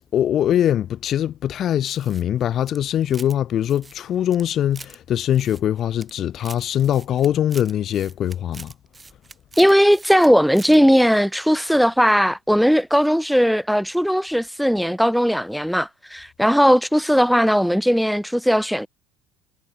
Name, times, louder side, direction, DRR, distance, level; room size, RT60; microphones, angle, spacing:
voice 1, 0.1-8.7, left 10 dB, 45° left, 1.2 m, -22 dB
sound 1, 1.8-3.4 3.6-5.0 5.3-6.1 6.4-10.3 10.5-10.8, right 4 dB, 20° right, 2.8 m, -43 dB
voice 2, 9.6-18.9, equal, ahead, 0.4 m, -18 dB
supercardioid pair, 110°, 0 cm